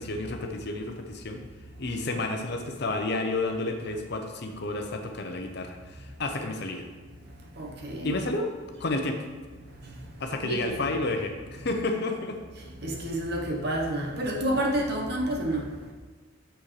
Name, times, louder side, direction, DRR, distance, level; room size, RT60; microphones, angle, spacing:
voice 1, 0.0-1.4 1.8-6.8 8.0-8.5 8.8-9.3 10.2-12.4, left 2 dB, 55° left, 4 dB, 0.8 m, -31 dB
voice 2, 7.6-8.1 9.8-9.9 10.4-10.6 12.8-15.7, right 1 dB, 55° right, 0 dB, 1.1 m, -29 dB
7.0 x 6.1 x 3.3 m, 1.4 s
head